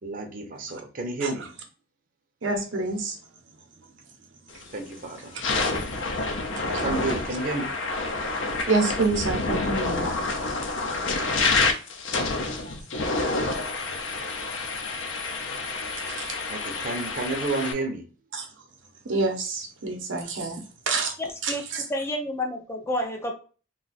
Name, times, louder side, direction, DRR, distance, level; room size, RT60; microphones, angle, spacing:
voice 1, 0.0-1.5 4.7-5.4 6.7-7.7 16.5-18.1, right 3 dB, 45° right, 4 dB, 0.6 m, -31 dB
voice 2, 2.4-3.2 5.3-5.5 6.5-6.8 8.7-10.1 10.9-11.0 12.6-12.7 16.0-16.3 18.3-18.5 19.0-21.1 21.4-21.8, right 3 dB, 80° right, 3 dB, 0.8 m, -28 dB
sound 1, 4.5-4.8 5.3-17.7, left 3 dB, 75° left, 0.5 m, -28 dB
voice 3, 21.2-21.6 21.9-23.3, left 1 dB, 15° left, 4 dB, 0.3 m, -29 dB
2.5 x 2.3 x 3.9 m, 0.38 s
head